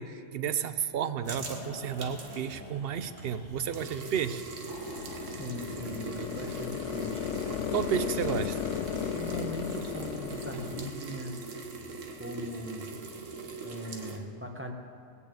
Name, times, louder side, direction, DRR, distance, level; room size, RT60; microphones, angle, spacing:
voice 1, 0.0-4.4 7.7-8.6, right 8 dB, 60° right, 13 dB, 0.7 m, -32 dB
sound 1, 0.6-4.5, left 1 dB, 30° left, 1.6 m, -48 dB
sound 2, 1.2-14.2, right 4 dB, 75° right, 1.6 m, -42 dB
sound 3, 4.7-10.9, left 10 dB, 75° left, 0.9 m, -35 dB
voice 2, 5.3-7.3 9.1-11.3 12.2-12.9 13.6-14.7, equal, 10° right, 2 dB, 1.2 m, -40 dB
20.0 x 6.9 x 8.5 m, 2.5 s
omnidirectional pair, 1.3 m